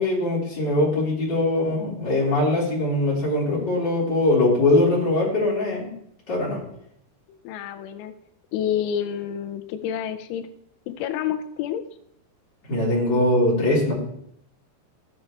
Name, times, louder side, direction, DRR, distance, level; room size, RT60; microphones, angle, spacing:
voice 1, 0.0-6.0 6.3-6.6 12.7-13.9, left 2 dB, 25° left, -6 dB, 3.9 m, -21 dB
voice 2, 7.3-8.1 8.5-10.5 10.9-11.8, left 9 dB, 90° left, 9 dB, 3.2 m, -28 dB
14.5 x 8.6 x 3.3 m, 0.73 s
omnidirectional pair, 5.3 m